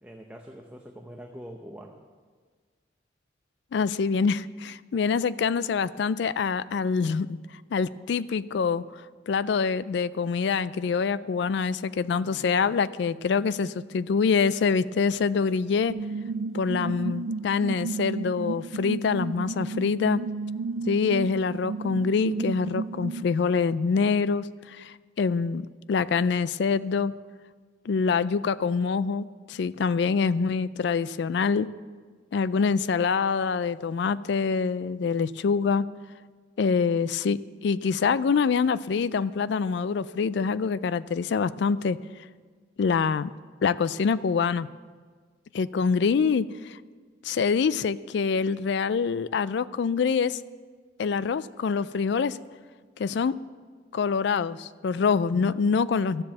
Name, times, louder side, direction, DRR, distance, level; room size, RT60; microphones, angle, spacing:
voice 1, 0.0-2.0 12.2-12.5, equal, 10° right, 1 dB, 0.6 m, -44 dB
voice 2, 3.7-7.4 7.7-8.8 9.3-15.9 16.5-20.2 20.9-27.1 27.9-31.7 32.3-35.9 36.6-42.0 42.8-43.3 43.6-44.7 45.5-46.8 47.2-50.4 51.0-52.4 53.0-53.3 53.9-56.2, left 5 dB, 60° left, 17 dB, 0.3 m, -25 dB
sound 1, 15.9-23.2, right 4 dB, 80° right, 0.4 m, -33 dB
13.0 x 7.4 x 7.3 m, 1.6 s
head